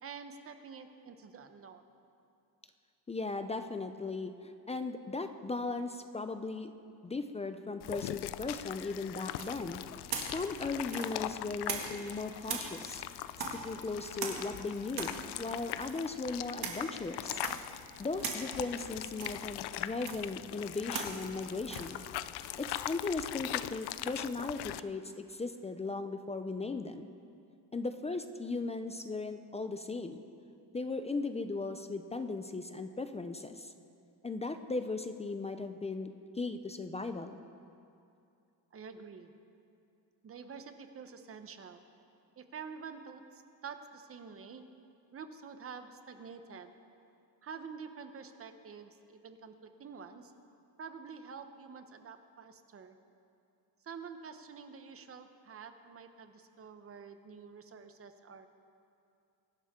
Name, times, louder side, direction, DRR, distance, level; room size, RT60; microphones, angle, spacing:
voice 1, 0.0-1.8 38.7-39.3 40.2-41.8 42.4-44.7 45.1-46.7 47.4-50.3 50.8-53.0 53.8-58.5, right 6 dB, 35° right, 8 dB, 0.9 m, -48 dB
voice 2, 3.1-6.7 7.0-9.8 10.2-13.0 13.5-17.4 18.0-22.0 22.6-27.1 27.7-30.2 30.7-33.7 34.2-37.4, left 3 dB, 15° left, 8 dB, 0.4 m, -37 dB
sound 1, 7.8-24.8, left 14 dB, 75° left, 0.5 m, -41 dB
sound 2, 9.3-12.1 12.4-23.4, right 5 dB, 65° right, 2.2 m, -42 dB
23.5 x 12.0 x 3.7 m, 2.5 s
cardioid pair, 155°, 40 cm